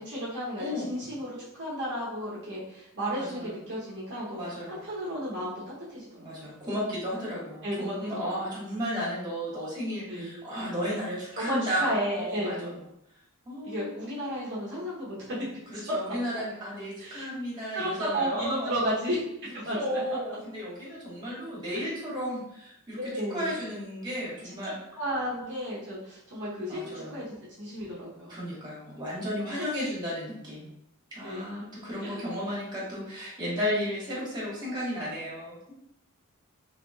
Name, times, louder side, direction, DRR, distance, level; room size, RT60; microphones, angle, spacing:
voice 1, 0.1-4.4 4.7-5.6 5.9-6.6 7.6-8.5 10.1-10.4 11.3-12.7 13.6-15.4 17.0-17.3 17.7-19.2 19.5-20.0 21.7-21.9 23.0-23.6 24.4-24.6 24.9-28.4 29.6-29.7 31.2-31.5 32.0-32.2, equal, 55° right, -7 dB, 0.8 m, -33 dB
voice 2, 3.1-3.6 4.3-4.8 6.2-12.8 13.4-14.0 15.7-18.8 19.7-24.8 26.7-27.2 28.3-30.7 31.1-35.7, equal, 20° right, -7 dB, 1.3 m, -34 dB
3.2 x 3.0 x 2.3 m, 0.81 s
head